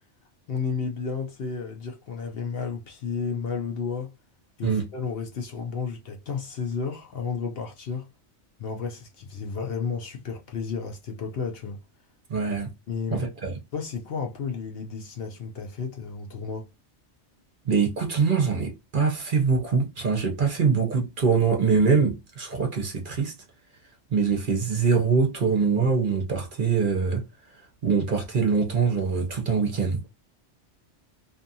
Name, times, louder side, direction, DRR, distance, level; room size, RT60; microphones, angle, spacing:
voice 1, 0.5-4.1 4.6-8.1 8.6-11.8 12.9-13.3 13.7-16.7, left 5 dB, 60° left, 0.8 m, -32 dB
voice 2, 12.3-12.7 13.1-13.5 17.6-23.3 24.1-27.2 27.8-30.0, right 5 dB, 50° right, 0.8 m, -23 dB
2.7 x 2.4 x 2.6 m
omnidirectional pair, 1.2 m